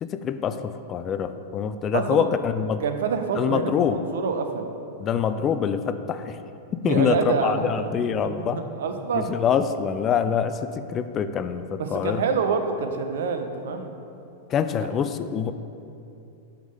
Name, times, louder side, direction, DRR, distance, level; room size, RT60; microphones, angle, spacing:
voice 1, 0.0-2.8 3.4-4.0 5.0-6.4 6.8-8.6 9.1-12.2 14.5-15.5, left 8 dB, 35° left, 10 dB, 0.3 m, -25 dB
voice 2, 1.9-2.2 2.8-4.7 6.8-7.9 8.2-9.4 11.8-13.9 14.8-14.9, right 5 dB, 70° right, 6 dB, 0.5 m, -27 dB
6.1 x 3.6 x 5.5 m, 2.7 s
hypercardioid pair, 100°, 0 cm